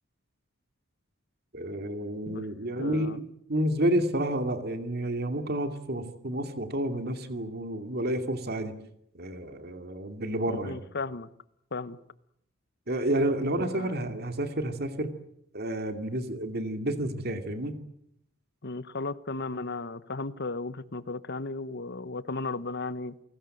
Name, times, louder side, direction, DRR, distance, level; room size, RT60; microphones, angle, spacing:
voice 1, 1.5-8.7 9.1-10.9 12.9-15.1 15.5-17.8, right 1 dB, 50° right, 7 dB, 2.5 m, -30 dB
voice 2, 2.8-3.2 10.5-11.3 11.7-12.0 13.5-14.0 18.6-23.1, left 3 dB, 55° left, 16 dB, 1.0 m, -35 dB
29.0 x 19.0 x 7.8 m, 0.73 s
head